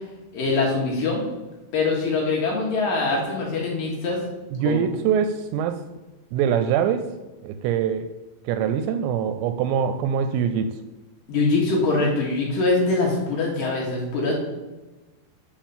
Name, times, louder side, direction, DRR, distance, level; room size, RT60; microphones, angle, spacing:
voice 1, 0.3-1.2 1.7-4.2 4.7-4.8 11.3-14.3, left 3 dB, 60° left, -3 dB, 2.9 m, -23 dB
voice 2, 4.5-5.8 6.3-7.1 7.4-8.1 8.4-10.8, right 8 dB, 85° right, 10 dB, 2.6 m, -23 dB
7.3 x 4.9 x 7.2 m, 1.1 s
omnidirectional pair, 5.3 m